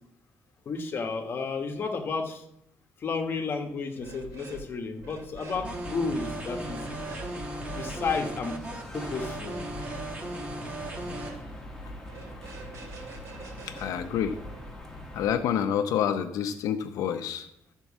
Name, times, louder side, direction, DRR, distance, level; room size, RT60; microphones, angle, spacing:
voice 1, 0.6-2.4 3.0-6.8 7.8-8.6 8.9-9.6, left 4 dB, 40° left, 4 dB, 1.2 m, -32 dB
sound 1, 4.0-4.7 4.9-5.7 6.7-7.3 7.7-8.3 9.4-10.1 10.7-11.4 12.0-14.7, right 3 dB, 60° right, 2.6 m, -45 dB
sound 2, 5.5-15.4, left 1 dB, 10° left, 1.4 m, -43 dB
sound 3, 5.6-11.3, right 1 dB, 25° right, 1.3 m, -37 dB
voice 2, 13.7-14.4 15.1-17.5, left 9 dB, 90° left, 7 dB, 0.7 m, -28 dB
13.0 x 4.5 x 7.3 m, 0.79 s
cardioid pair, 160°, 6 cm